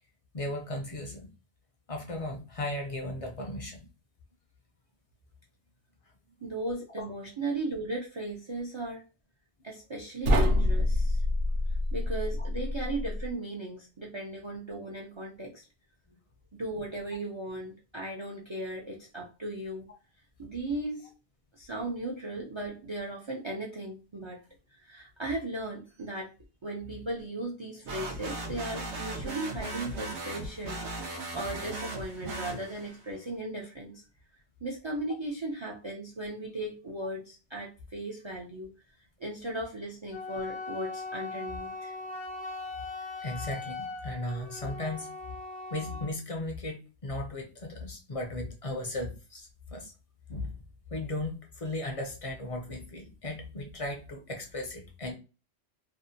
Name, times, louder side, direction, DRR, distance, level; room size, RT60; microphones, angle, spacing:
voice 1, 0.3-1.3 1.9-3.8 7.0-7.1 43.2-45.1 45.7-49.9 50.3-50.5 50.9-55.1, left 1 dB, 45° left, 2 dB, 0.4 m, -36 dB
voice 2, 6.4-9.0 9.6-11.2 11.9-15.6 16.5-19.9 20.4-21.1 21.5-24.4 24.7-26.3 26.6-34.0 34.6-38.7 39.2-41.9, right 2 dB, 50° right, -1 dB, 0.3 m, -37 dB
sound 1, 10.2-13.3, left 1 dB, 70° right, 0.7 m, -26 dB
sound 2, 27.9-33.1, right 2 dB, 90° right, 1.0 m, -37 dB
Wind instrument woodwind instrument, 40.1-46.2, left 3 dB, 75° left, 1.0 m, -40 dB
2.6 x 2.1 x 2.6 m, 0.31 s
omnidirectional pair, 1.1 m